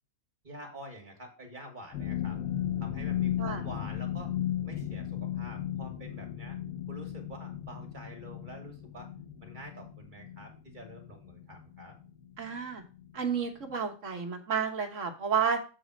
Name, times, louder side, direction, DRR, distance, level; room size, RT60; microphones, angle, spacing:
voice 1, 0.4-2.4 2.8-4.3 4.6-6.6 6.9-9.1 9.4-11.9, equal, 35° right, 1 dB, 2.1 m, -47 dB
sound 1, 1.9-12.6 12.9-13.3 13.6-13.8, left 11 dB, 80° left, 1.3 m, -36 dB
voice 2, 12.4-12.8 13.1-15.6, right 6 dB, 60° right, 4 dB, 1.5 m, -31 dB
7.5 x 4.2 x 6.1 m, 0.35 s
omnidirectional pair, 1.5 m